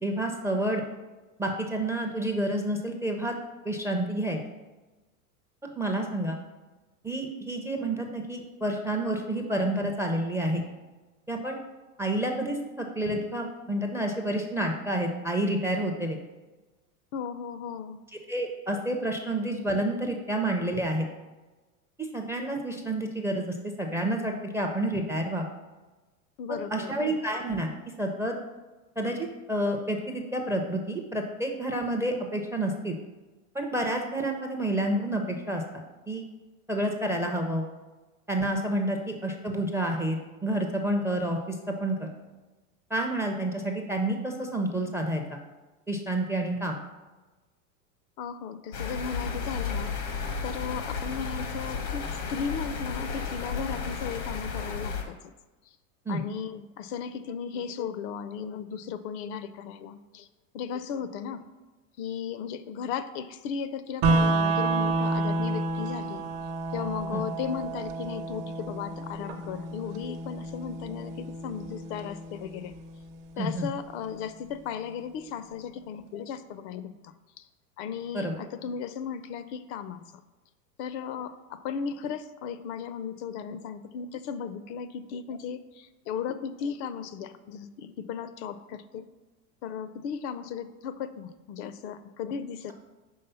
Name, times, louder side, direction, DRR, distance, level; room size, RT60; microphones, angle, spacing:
voice 1, 0.0-0.8 1.4-3.4 3.6-4.4 5.8-6.4 7.0-10.6 11.3-11.6 12.0-16.2 18.3-21.1 22.1-25.5 26.7-27.7 28.0-28.4 29.0-29.2 29.5-33.0 33.5-36.2 36.7-37.7 38.3-42.1 42.9-45.4 45.9-46.8 56.1-56.2 67.1-67.2 73.4-73.7 78.1-78.3, right 1 dB, 5° right, 3 dB, 0.4 m, -29 dB
voice 2, 17.1-18.0 26.4-26.9 48.2-49.9 50.4-55.3 55.7-55.8 56.1-60.3 60.5-61.4 62.0-66.2 66.7-72.7 73.4-77.5 77.8-80.0 80.8-89.1 89.6-92.7, left 7 dB, 55° left, 12 dB, 0.5 m, -36 dB
sound 1, 48.7-55.0, left 5 dB, 85° left, 1.1 m, -33 dB
sound 2, 64.0-74.0, right 2 dB, 45° right, 0.7 m, -30 dB
5.5 x 3.3 x 5.5 m, 1.2 s
hypercardioid pair, 105°, 44 cm